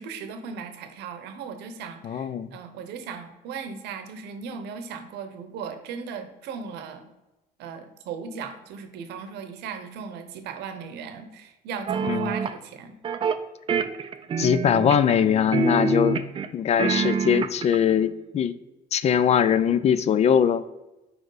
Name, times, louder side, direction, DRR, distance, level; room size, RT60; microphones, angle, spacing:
voice 1, 0.0-7.0 7.6-13.0, right 6 dB, 85° right, 8 dB, 0.8 m, -37 dB
voice 2, 2.0-2.5 12.0-12.3 14.4-16.2 16.5-18.5 18.9-20.6, left 8 dB, 40° left, 14 dB, 0.4 m, -21 dB
sound 1, 11.9-12.6 13.0-13.4 13.7-15.2 15.5-16.5 16.8-17.8, right 5 dB, 30° right, 0.4 m, -26 dB
4.7 x 4.4 x 4.8 m, 1.0 s
cardioid pair, 110°, 17 cm